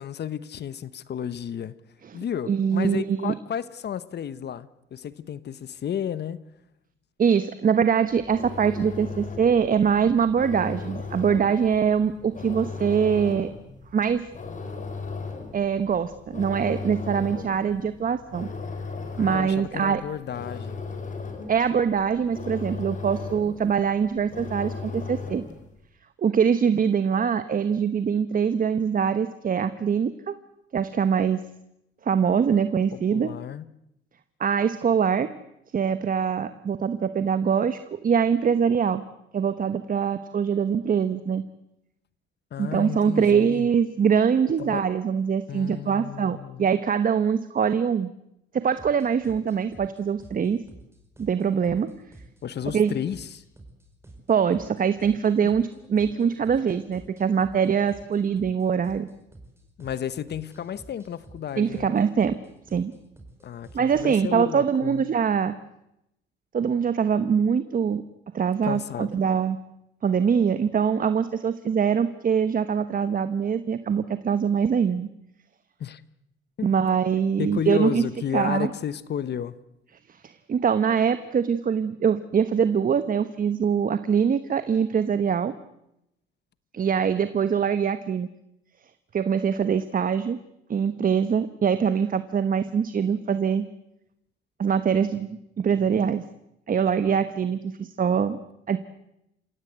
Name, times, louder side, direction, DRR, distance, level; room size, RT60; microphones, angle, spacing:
voice 1, 0.0-1.7 2.1-6.4 19.2-20.9 32.9-33.7 42.5-43.7 44.6-44.9 45.5-46.7 52.4-53.4 55.4-56.3 59.8-61.9 63.4-65.0 68.6-69.1 75.8-76.0 77.4-79.6, left 9 dB, 55° left, 1.1 m, -32 dB
voice 2, 2.0-3.3 7.2-13.5 13.9-14.2 15.5-18.5 19.2-20.0 21.5-25.4 26.2-30.4 30.7-31.4 32.0-33.3 34.4-35.3 35.7-39.0 39.3-41.4 42.6-48.1 48.5-50.6 51.2-51.9 52.7-52.9 54.3-59.1 61.6-62.3 62.7-62.9 63.7-65.5 66.5-68.0 68.3-69.6 70.0-75.1 76.6-78.0 78.3-78.7 80.2-85.5 86.7-88.3 89.1-90.4 90.7-93.6 94.6-96.2 96.7-98.4 98.7-98.8, right 7 dB, 45° right, 1.1 m, -23 dB
sound 1, 8.1-25.7, left 4 dB, 40° left, 4.4 m, -37 dB
sound 2, 48.8-64.1, right 2 dB, 10° right, 5.2 m, -50 dB
29.0 x 16.5 x 8.2 m
cardioid pair, 90°, 20 cm